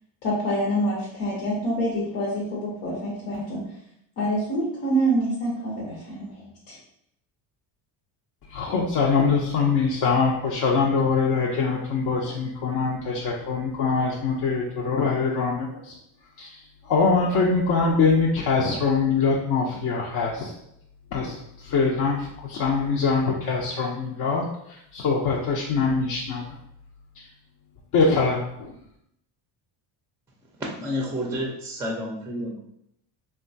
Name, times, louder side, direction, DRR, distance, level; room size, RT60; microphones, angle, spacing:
voice 1, 0.2-3.6 4.2-6.8, right 1 dB, 90° left, -6 dB, 1.0 m, -26 dB
voice 2, 8.5-15.9 16.4-16.5 16.9-20.5 21.1-26.4 27.9-28.7, left 4 dB, 50° left, -3 dB, 0.6 m, -23 dB
voice 3, 30.8-32.6, equal, 5° right, -1 dB, 0.4 m, -30 dB
2.8 x 2.3 x 2.6 m, 0.75 s
supercardioid pair, 95°, 48 cm